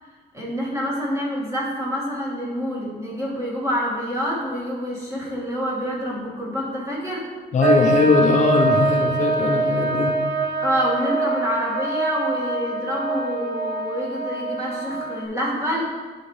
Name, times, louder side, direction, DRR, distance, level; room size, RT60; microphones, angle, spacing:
voice 1, 0.3-7.3 10.6-15.9, equal, 15° right, -5 dB, 2.0 m, -27 dB
voice 2, 7.5-10.1, left 4 dB, 45° left, 1 dB, 0.7 m, -20 dB
sound 1, 7.6-15.2, right 3 dB, 80° right, 0.9 m, -24 dB
10.5 x 4.3 x 3.2 m, 1.5 s
cardioid pair, 120°, 17 cm